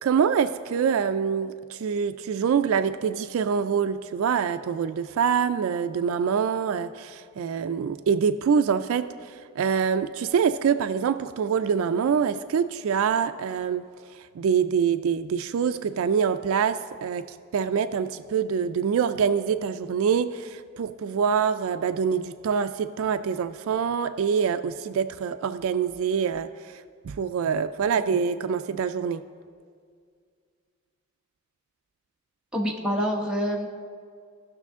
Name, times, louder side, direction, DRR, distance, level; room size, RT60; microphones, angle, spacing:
voice 1, 0.0-13.8 14.3-17.3 17.5-29.2, right 7 dB, 70° right, 11 dB, 0.3 m, -25 dB
voice 2, 32.5-33.7, equal, 5° right, -2 dB, 1.0 m, -26 dB
16.0 x 6.3 x 3.6 m, 2.1 s
head